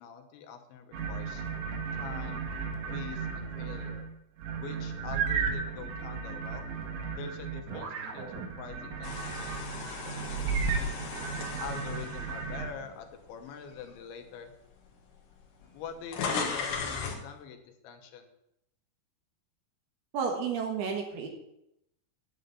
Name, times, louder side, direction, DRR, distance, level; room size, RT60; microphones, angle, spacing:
voice 1, 0.0-1.4 2.0-2.5 2.9-4.1 4.6-6.7 7.1-10.9 11.6-14.5 15.7-18.3, left 6 dB, 80° left, 5 dB, 3.3 m, -45 dB
sound 1, 0.9-4.1 4.4-12.7, right 5 dB, 85° right, 3.8 m, -34 dB
sound 2, 9.0-13.3 13.8-14.0 14.9-15.0 15.2-17.3, left 5 dB, 60° left, 2.2 m, -37 dB
voice 2, 20.1-21.3, right 6 dB, 65° right, 2 dB, 3.0 m, -31 dB
9.9 x 9.1 x 5.4 m, 0.80 s
omnidirectional pair, 5.3 m